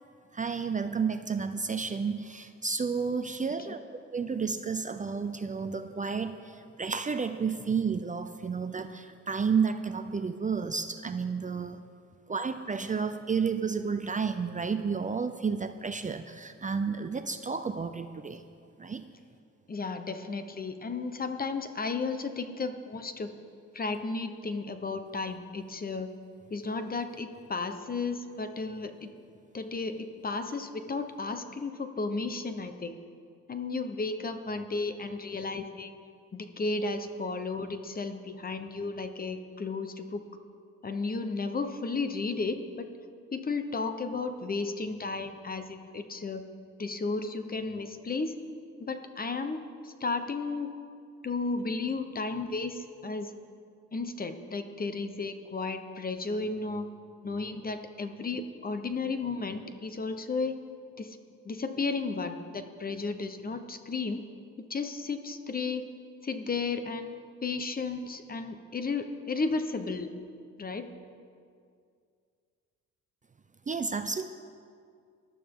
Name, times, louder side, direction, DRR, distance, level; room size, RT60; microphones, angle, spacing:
voice 1, 0.3-3.8 4.1-6.4 6.8-11.8 12.3-18.4 18.8-19.0 73.7-74.3, right 5 dB, 25° right, 8 dB, 0.6 m, -31 dB
voice 2, 19.7-23.3 23.7-26.1 26.5-29.1 29.5-33.0 33.5-35.9 36.3-40.2 40.8-42.9 43.3-46.4 46.8-48.4 48.8-50.7 51.2-53.3 53.9-56.9 57.2-60.6 61.0-61.2 61.5-64.2 64.7-65.8 66.2-67.1 67.4-70.1 70.6-70.9, left 3 dB, 30° left, 8 dB, 1.0 m, -33 dB
19.5 x 12.0 x 3.8 m, 2.3 s
cardioid pair, 90°, 30 cm